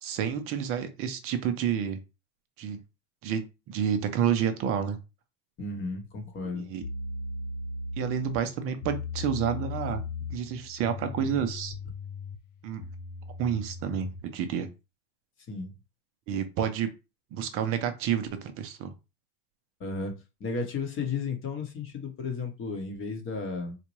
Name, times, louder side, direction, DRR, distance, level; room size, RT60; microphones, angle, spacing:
voice 1, 0.0-2.0 2.6-2.8 3.2-5.0 6.5-6.8 8.0-10.0 10.3-11.7 12.6-12.8 13.4-14.7 16.3-16.9 17.3-18.9, right 8 dB, 30° right, 8 dB, 0.5 m, -29 dB
voice 2, 5.6-6.7 15.5-15.7 19.8-20.1 20.4-23.8, left 4 dB, 25° left, 4 dB, 0.9 m, -33 dB
sound 1, 6.3-6.4 6.8-14.3, left 3 dB, 55° left, 0.6 m, -38 dB
4.1 x 2.2 x 3.0 m, 0.27 s
supercardioid pair, 125°, 50 cm